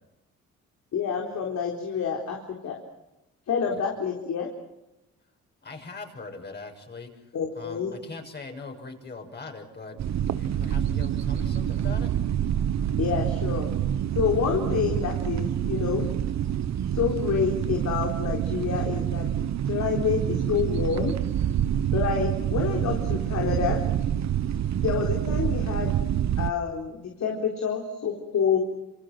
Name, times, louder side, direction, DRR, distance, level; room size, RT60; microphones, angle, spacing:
voice 1, 0.9-2.4 2.6-2.8 3.5-4.5 7.3-7.9 13.0-13.7 14.1-16.1 16.9-21.1 21.9-23.8 24.8-25.9 26.4-28.6, left 7 dB, 65° left, 0 dB, 4.1 m, -28 dB
voice 2, 5.6-7.1 7.5-12.1, left 3 dB, 35° left, 3 dB, 6.6 m, -41 dB
sound 1, 10.0-26.5, right 10 dB, 65° right, 1.2 m, -27 dB
27.5 x 27.0 x 6.2 m, 0.94 s
cardioid pair, 90°, 30 cm